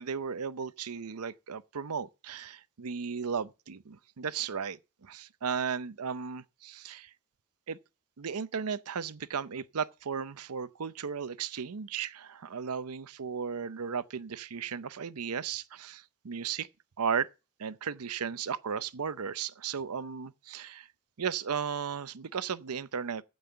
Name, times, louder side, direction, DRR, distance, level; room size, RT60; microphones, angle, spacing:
voice 1, 0.0-7.1 7.7-7.8 8.2-16.7 17.0-17.3 17.6-20.9 21.2-23.2, right 6 dB, 90° right, 0.6 m, -35 dB
15.0 x 5.5 x 6.7 m
head